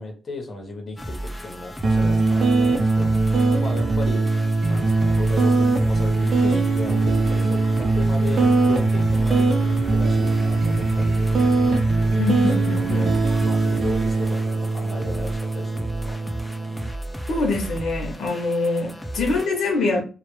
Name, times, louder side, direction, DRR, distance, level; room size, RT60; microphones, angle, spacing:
voice 1, 0.0-4.3 4.7-11.2 12.6-13.2 13.4-16.2, left 2 dB, 40° left, 0.7 m, -35 dB
sound 1, 1.0-19.5, equal, 10° left, 0.3 m, -35 dB
sound 2, 1.8-16.9, right 3 dB, 50° right, 0.5 m, -21 dB
sound 3, 4.6-14.3, right 1 dB, 80° right, 0.8 m, -39 dB
voice 2, 12.2-13.1 17.3-20.0, left 3 dB, 80° left, 0.6 m, -24 dB
2.0 x 2.0 x 2.9 m
cardioid pair, 105°, 0 cm